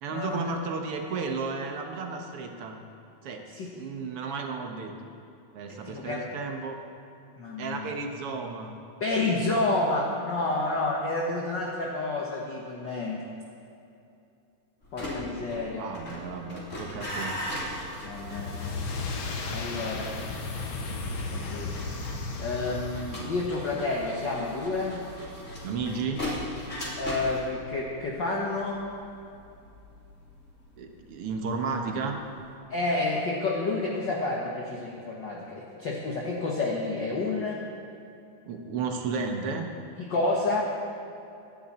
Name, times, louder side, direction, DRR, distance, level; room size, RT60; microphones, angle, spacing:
voice 1, 0.0-2.8 3.2-3.5 3.7-4.9 5.5-6.8 7.6-8.7 15.8-17.4 25.6-26.3 30.8-32.2 38.5-39.7, right 4 dB, 65° right, 3 dB, 1.5 m, -33 dB
voice 2, 5.7-6.2 7.4-7.9 9.0-13.2 14.9-15.9 18.0-18.5 19.5-20.6 21.3-21.7 22.4-25.0 27.0-28.8 32.7-37.6 40.0-40.6, left 2 dB, 55° left, -3 dB, 1.2 m, -29 dB
sound 1, 14.8-31.8 32.1-32.5, left 1 dB, 20° left, 3.3 m, -39 dB
sound 2, 18.2-23.5, left 3 dB, 75° left, 1.1 m, -35 dB
25.5 x 10.5 x 4.3 m, 2.7 s
omnidirectional pair, 4.1 m